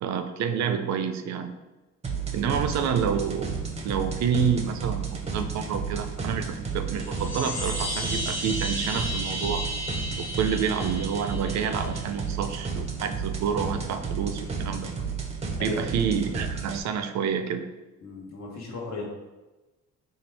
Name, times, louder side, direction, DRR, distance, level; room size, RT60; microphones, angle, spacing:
voice 1, 0.0-1.5 2.3-9.7 10.2-15.1 15.6-17.7, right 7 dB, 65° right, 8 dB, 0.4 m, -28 dB
sound 1, 2.0-16.8, right 5 dB, 20° right, 0.6 m, -32 dB
voice 2, 2.3-2.7 15.6-15.9 18.0-19.1, left 3 dB, 60° left, -1 dB, 1.1 m, -36 dB
sound 2, 6.9-12.0, equal, 40° left, 1.0 m, -34 dB
4.2 x 2.4 x 3.3 m, 1.1 s
cardioid pair, 90°, 30 cm